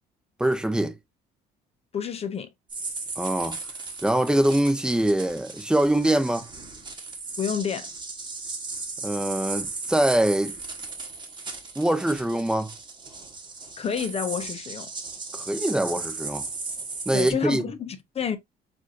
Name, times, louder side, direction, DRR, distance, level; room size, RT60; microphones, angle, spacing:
voice 1, 0.4-0.9 3.2-3.6 4.0-6.4 9.0-10.5 11.8-12.7 15.3-16.4 17.1-17.6, right 1 dB, 5° right, 0.8 m, -23 dB
voice 2, 1.9-2.5 7.4-7.9 13.8-14.9 17.1-18.4, left 7 dB, 35° left, 0.7 m, -29 dB
sound 1, 2.7-17.3, right 3 dB, 25° right, 1.3 m, -36 dB
6.2 x 2.6 x 2.6 m
cardioid pair, 110°, 17 cm